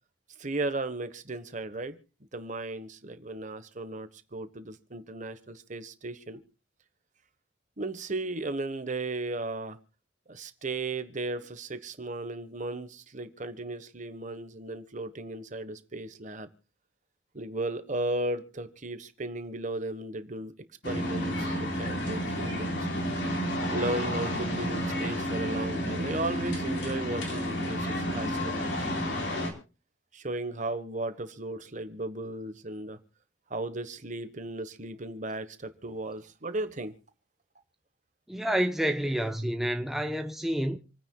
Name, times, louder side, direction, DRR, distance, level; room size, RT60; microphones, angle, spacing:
voice 1, 0.4-2.0 2.3-6.4 7.8-9.8 10.3-16.5 17.3-20.5 20.8-22.8 23.7-27.9 28.1-28.9 30.1-33.0 33.5-36.9, right 2 dB, 40° right, 1.2 m, -35 dB
sound 1, 20.8-29.5, equal, 60° left, 3.9 m, -31 dB
voice 2, 38.3-40.8, equal, ahead, 0.7 m, -29 dB
28.0 x 9.8 x 2.3 m
head